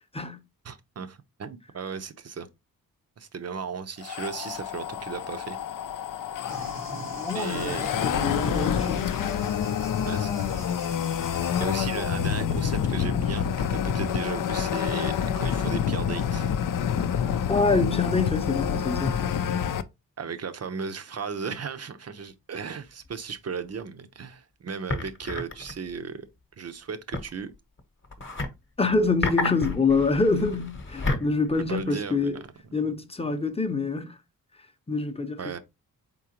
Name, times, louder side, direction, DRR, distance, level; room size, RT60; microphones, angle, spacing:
voice 1, 0.6-2.5 3.2-5.6 7.3-7.8 10.1-10.7 11.6-16.6 20.2-26.3 26.6-27.5 31.7-32.5 35.4-35.6, right 6 dB, 45° right, 0.7 m, -36 dB
sound 1, 4.0-19.8, left 8 dB, 60° left, 0.5 m, -28 dB
Thunder, 6.5-11.6, right 3 dB, 80° right, 1.5 m, -43 dB
voice 2, 7.1-9.2 17.5-19.2 28.8-32.4 32.7-34.1 34.9-35.4, left 4 dB, 15° left, 0.7 m, -26 dB
sound 2, 22.6-22.7 23.0-23.1 24.9-25.9 27.1-28.5 28.9-32.3, left 2 dB, 30° left, 1.1 m, -32 dB
4.1 x 3.8 x 2.9 m
cardioid pair, 75°, 36 cm